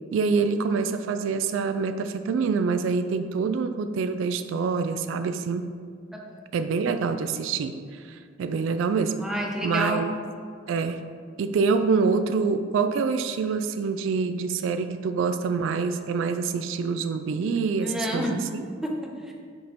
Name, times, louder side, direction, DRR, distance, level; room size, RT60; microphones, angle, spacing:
voice 1, 0.1-5.7 6.5-9.1 9.6-10.1 10.7-11.0 11.4-18.6, right 5 dB, 75° right, 10 dB, 0.3 m, -26 dB
voice 2, 6.1-6.4 9.2-10.1 17.8-18.5 18.8-19.3, equal, 5° right, -1 dB, 0.6 m, -30 dB
5.2 x 4.1 x 4.4 m, 2.1 s
head